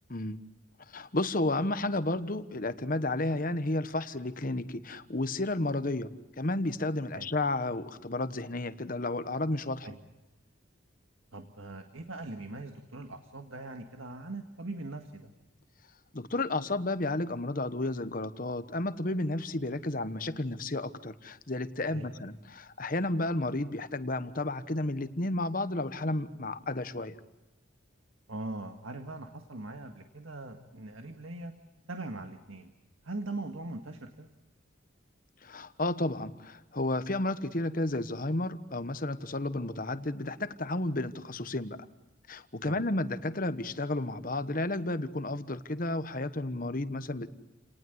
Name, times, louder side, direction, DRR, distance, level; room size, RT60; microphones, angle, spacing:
voice 1, 0.1-0.4 0.9-6.1 6.4-9.9 16.1-27.1 35.4-41.8 42.3-47.3, left 2 dB, 45° left, 12 dB, 1.2 m, -32 dB
voice 2, 11.3-15.3 21.9-22.2 28.3-31.5 31.9-32.7 33.0-34.3 42.7-42.8, right 2 dB, 85° right, 6 dB, 1.8 m, -41 dB
29.5 x 19.0 x 8.0 m, 1.1 s
head